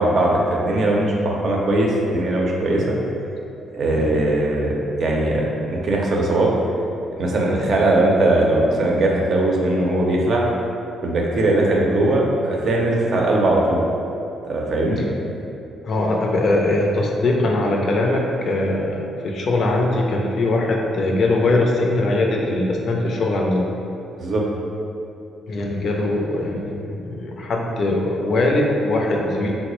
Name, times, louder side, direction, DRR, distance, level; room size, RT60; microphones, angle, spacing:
voice 1, 0.0-3.0 3.7-4.7 5.0-6.5 7.2-10.4 11.0-13.8 14.5-15.0 24.2-24.4, right 1 dB, 55° right, -2 dB, 0.5 m, -19 dB
voice 2, 15.8-23.7 25.5-29.5, left 2 dB, 60° left, 0 dB, 0.4 m, -21 dB
3.8 x 2.0 x 3.0 m, 2.8 s
cardioid pair, 90°, 0 cm